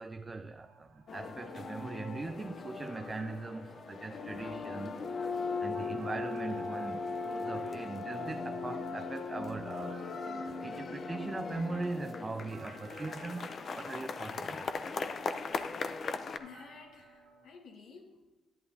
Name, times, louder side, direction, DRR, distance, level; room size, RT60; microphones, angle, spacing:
voice 1, 0.0-5.1 5.6-10.0 10.5-14.7, right 3 dB, 25° right, 0.4 m, -40 dB
sound 1, 0.6-17.5, right 4 dB, 90° right, 1.4 m, -57 dB
sound 2, 1.1-16.4, left 4 dB, 50° left, 0.6 m, -38 dB
voice 2, 16.4-18.3, left 5 dB, 80° left, 1.5 m, -52 dB
11.0 x 10.5 x 2.7 m
cardioid pair, 90°, 0 cm